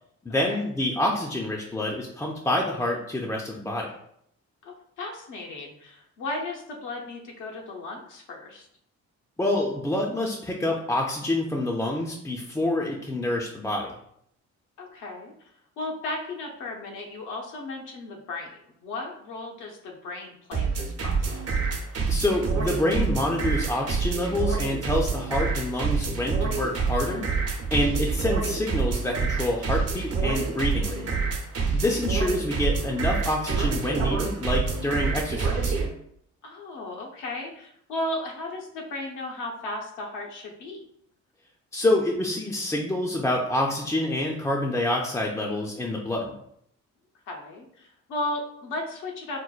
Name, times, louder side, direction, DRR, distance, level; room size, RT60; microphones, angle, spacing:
voice 1, 0.2-3.9 9.4-14.0 22.1-27.3 27.7-31.1 31.7-35.8 41.7-46.4, left 1 dB, 10° left, -1 dB, 0.3 m, -27 dB
voice 2, 4.6-8.7 14.8-21.6 27.8-28.0 31.7-31.9 36.4-40.9 47.3-49.4, left 2 dB, 90° left, 1 dB, 0.7 m, -35 dB
sound 1, 20.5-35.9, right 4 dB, 55° right, 0.7 m, -27 dB
4.3 x 2.1 x 2.3 m, 0.71 s
cardioid pair, 90°, 30 cm